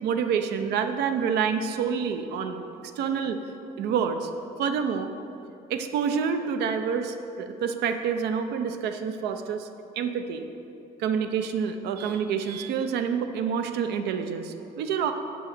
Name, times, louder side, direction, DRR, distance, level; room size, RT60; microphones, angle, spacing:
voice 1, 0.0-2.6 3.0-3.4 3.8-4.3 4.6-5.1 5.7-9.7 10.0-10.5 11.0-15.1, right 7 dB, 75° right, 7 dB, 0.7 m, -27 dB
8.1 x 6.2 x 6.7 m, 2.7 s
cardioid pair, 110°, 17 cm